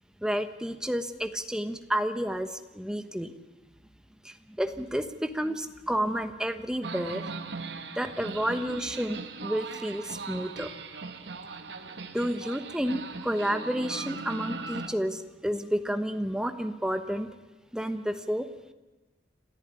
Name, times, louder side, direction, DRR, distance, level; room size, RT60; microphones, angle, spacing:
voice 1, 0.2-3.3 4.2-7.2 7.9-10.7 12.1-17.3 17.7-18.5, equal, 5° right, 8 dB, 1.1 m, -30 dB
sound 1, 6.8-14.9, right 4 dB, 70° right, 1.4 m, -39 dB
27.0 x 14.0 x 9.8 m, 1.1 s
head